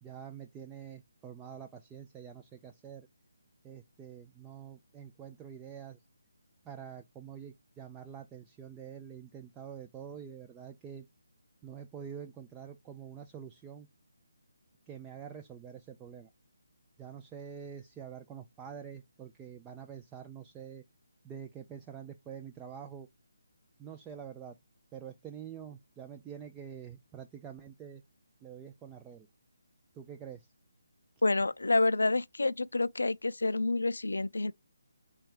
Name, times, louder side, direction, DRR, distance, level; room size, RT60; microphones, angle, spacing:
voice 1, 0.0-3.1 3.6-6.0 6.6-11.1 11.6-13.9 14.9-16.3 17.0-20.8 21.2-23.1 23.8-24.6 24.9-28.0 28.4-29.3 29.9-30.5, right 8 dB, 15° right, 0.3 m, -46 dB
voice 2, 31.2-34.5, left 2 dB, 75° left, 0.3 m, -28 dB
3.5 x 3.2 x 4.7 m
figure-of-eight pair, 150°, 0 cm